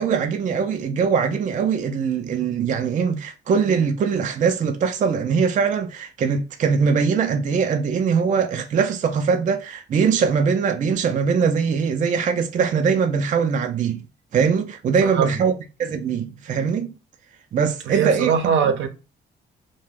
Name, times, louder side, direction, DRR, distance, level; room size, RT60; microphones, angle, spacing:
voice 1, 0.0-14.0 14.3-15.5 15.8-16.9 17.5-18.3, right 6 dB, 40° right, 0.4 m, -21 dB
voice 2, 15.0-15.4 17.9-18.9, right 7 dB, 75° right, 0.6 m, -21 dB
2.4 x 2.1 x 3.4 m
cardioid pair, 90°, 20 cm